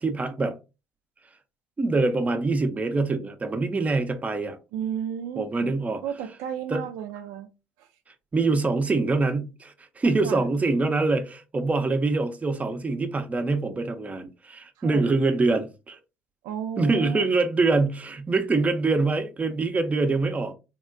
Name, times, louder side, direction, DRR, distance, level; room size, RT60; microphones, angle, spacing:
voice 1, 0.0-0.6 1.8-4.6 5.4-6.0 6.7-6.8 8.3-16.0 16.8-20.5, right 3 dB, 25° right, 0.5 m, -24 dB
voice 2, 4.7-5.7 6.0-7.5 7.8-7.9 10.2-10.4 14.8-15.1 16.4-17.2, right 8 dB, 75° right, 0.3 m, -33 dB
3.5 x 2.1 x 2.4 m
supercardioid pair, 70°, 6 cm